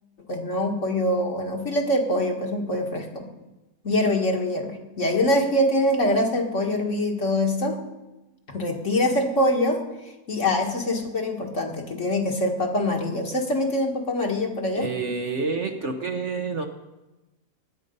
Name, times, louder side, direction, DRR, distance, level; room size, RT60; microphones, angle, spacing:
voice 1, 0.3-3.3 3.8-7.8 8.5-9.8 10.3-14.9, left 1 dB, 50° left, 1 dB, 2.1 m, -24 dB
voice 2, 14.7-16.6, right 4 dB, 50° right, 5 dB, 1.2 m, -28 dB
17.5 x 10.0 x 5.4 m, 1.0 s
omnidirectional pair, 1.7 m